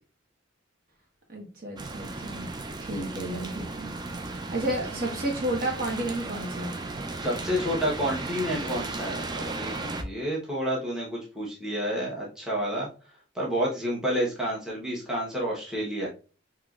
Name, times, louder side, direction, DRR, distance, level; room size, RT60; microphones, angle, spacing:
voice 1, 1.3-2.5 2.9-3.9 4.2-6.7, right 1 dB, 50° right, 0 dB, 1.2 m, -32 dB
sound 1, 1.8-10.0, right 2 dB, 20° right, 0.4 m, -35 dB
voice 2, 7.2-12.9 13.3-16.1, equal, 5° right, -4 dB, 1.1 m, -29 dB
5.7 x 2.9 x 2.4 m, 0.36 s
head